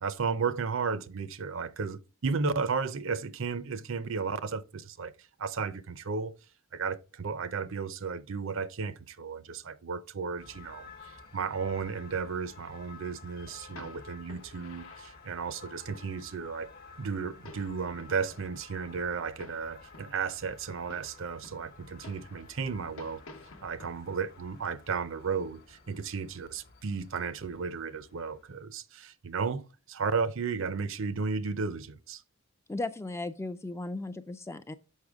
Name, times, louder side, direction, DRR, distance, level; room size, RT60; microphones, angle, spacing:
voice 1, 0.0-5.1 5.4-6.3 6.7-16.7 17.0-23.2 23.6-32.2, right 5 dB, 60° right, 0.6 m, -34 dB
sound 1, 10.4-28.6, left 4 dB, 45° left, 1.1 m, -52 dB
sound 2, 13.4-15.7 16.0-16.1 16.3-16.4 16.8-16.9 17.2-18.6 18.9-19.0 19.3-20.7 20.9-24.2, left 3 dB, 75° left, 0.9 m, -52 dB
voice 2, 32.7-34.7, left 2 dB, 10° left, 0.3 m, -36 dB
6.5 x 5.5 x 3.5 m
head